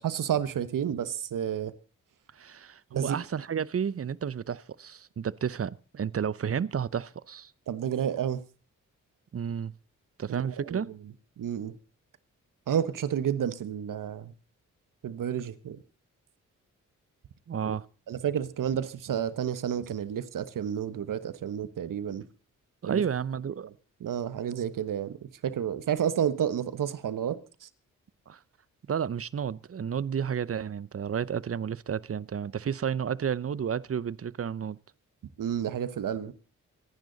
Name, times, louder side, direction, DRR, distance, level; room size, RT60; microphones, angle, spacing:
voice 1, 0.0-1.7 2.9-3.2 7.7-8.4 10.3-10.8 11.4-11.7 12.7-14.3 15.0-15.8 17.7-17.8 18.1-22.2 22.9-23.0 24.0-27.7 35.4-36.3, right 9 dB, 75° right, 1.3 m, -30 dB
voice 2, 2.3-7.5 9.3-9.7 10.2-10.9 17.5-17.9 22.8-23.7 28.3-28.4 28.9-34.8, right 7 dB, 45° right, 0.8 m, -31 dB
25.5 x 10.5 x 4.1 m
cardioid pair, 55°, 32 cm